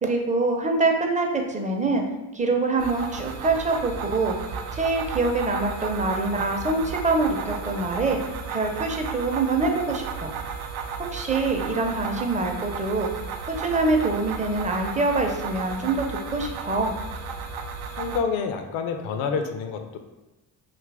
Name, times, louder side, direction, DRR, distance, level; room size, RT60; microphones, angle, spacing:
voice 1, 0.0-2.0 2.3-4.4 4.7-8.2 8.5-10.3 11.0-13.1 13.5-16.9, right 3 dB, 15° right, 2 dB, 0.5 m, -25 dB
sound 1, 2.8-18.2, right 6 dB, 70° right, 0.5 m, -34 dB
voice 2, 18.0-20.0, left 5 dB, 70° left, 6 dB, 0.5 m, -28 dB
2.8 x 2.5 x 3.4 m, 1.0 s
hypercardioid pair, 55°, 48 cm